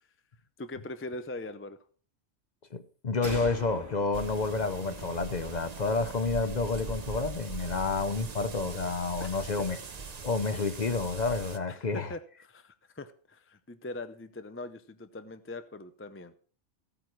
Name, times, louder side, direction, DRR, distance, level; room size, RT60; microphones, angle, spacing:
voice 1, 0.6-1.8 9.2-9.4 11.7-16.3, left 2 dB, 15° left, 0.4 m, -41 dB
voice 2, 2.7-9.8 10.2-12.1, left 3 dB, 40° left, 0.8 m, -30 dB
sound 1, 3.2-6.7, right 1 dB, 15° right, 1.6 m, -45 dB
sound 2, 4.1-11.6, right 4 dB, 40° right, 0.8 m, -41 dB
14.0 x 8.9 x 4.7 m
omnidirectional pair, 1.3 m